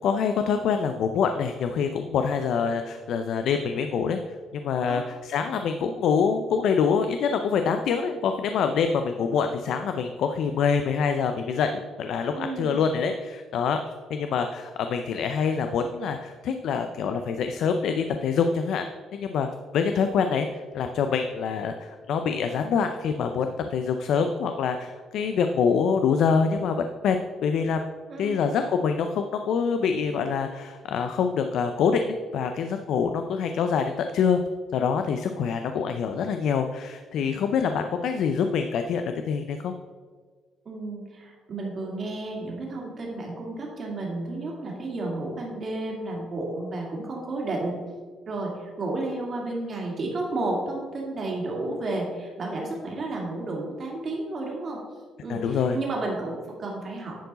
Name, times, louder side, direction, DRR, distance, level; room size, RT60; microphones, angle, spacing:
voice 1, 0.0-4.2 4.5-18.8 19.1-19.5 19.7-26.8 27.0-27.2 27.4-27.8 28.2-34.4 34.7-39.7 55.3-55.8, left 6 dB, 70° left, 7 dB, 0.4 m, -25 dB
voice 2, 12.3-12.8 28.1-28.4 40.7-47.8 48.3-54.8 55.2-57.1, right 2 dB, 45° right, -1 dB, 2.1 m, -32 dB
10.0 x 4.6 x 4.0 m, 1.5 s
cardioid pair, 115°, 0 cm